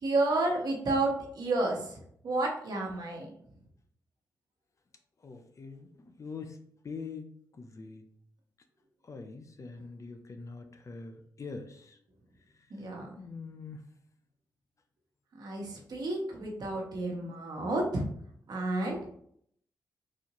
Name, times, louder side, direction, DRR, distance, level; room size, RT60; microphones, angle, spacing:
voice 1, 0.0-3.3 12.7-13.1 15.4-18.1 18.5-19.0, right 2 dB, 65° right, 0 dB, 1.1 m, -31 dB
voice 2, 5.2-5.9 6.2-6.6 6.8-7.3 7.6-8.0 9.1-11.8 13.2-13.8, left 4 dB, 45° left, 7 dB, 0.6 m, -43 dB
4.1 x 2.6 x 2.9 m, 0.66 s
cardioid pair, 70°, 7 cm